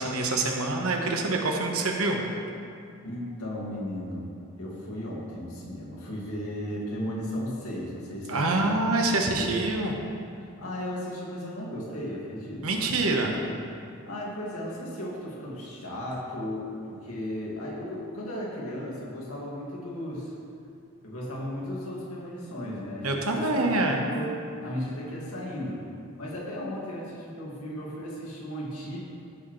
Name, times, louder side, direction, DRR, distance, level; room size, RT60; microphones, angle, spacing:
voice 1, 0.0-2.2 8.3-9.9 12.6-13.4 23.0-24.1, right 2 dB, 70° right, 1 dB, 1.2 m, -26 dB
voice 2, 3.0-4.3 4.6-8.8 9.2-9.7 10.6-12.8 14.1-20.3 21.0-25.8 26.2-29.0, equal, 75° left, -4 dB, 2.2 m, -35 dB
15.5 x 6.4 x 3.2 m, 2.5 s
head